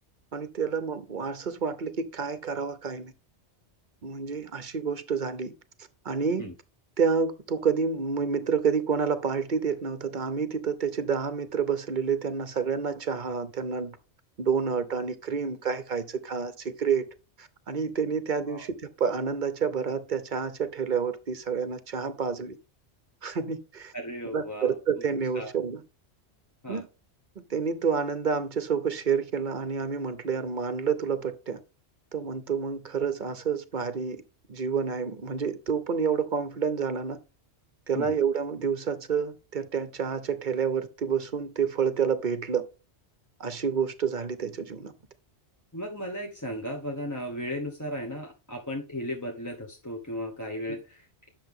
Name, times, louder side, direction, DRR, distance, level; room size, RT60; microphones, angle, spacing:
voice 1, 0.3-3.1 4.0-5.5 6.0-6.5 7.0-14.0 14.4-17.0 17.4-22.6 23.2-23.9 24.3-25.8 26.7-26.9 27.5-31.6 32.1-34.2 34.5-37.2 37.9-42.7 43.4-44.9 50.7-50.8, right 6 dB, 50° right, 0.9 m, -29 dB
voice 2, 23.9-24.7 25.3-25.5 26.6-26.8 37.9-38.1 45.7-51.3, equal, 15° left, 1.2 m, -35 dB
10.0 x 6.6 x 3.7 m
omnidirectional pair, 1.2 m